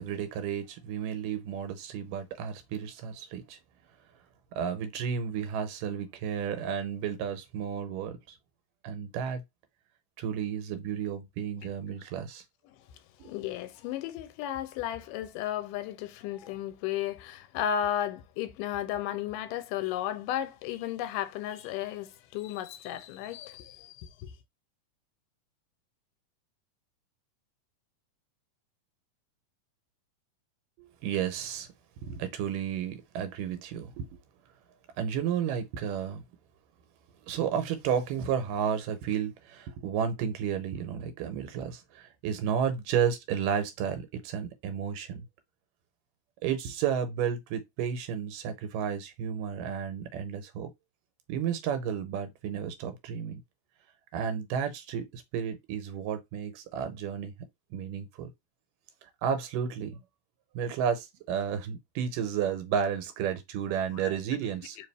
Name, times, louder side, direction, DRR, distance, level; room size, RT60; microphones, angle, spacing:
voice 1, 0.0-3.6 4.6-8.4 8.8-9.4 10.2-12.4 13.2-13.3 30.8-31.7 32.0-34.1 35.0-36.2 37.2-45.3 46.4-50.7 51.3-53.4 54.1-57.3 57.7-58.3 59.0-60.0 60.6-64.8, right 8 dB, 85° right, 2.4 m, -32 dB
voice 2, 13.2-24.3 64.0-64.1, left 11 dB, 90° left, 2.2 m, -34 dB
4.7 x 2.9 x 3.3 m
omnidirectional pair, 3.7 m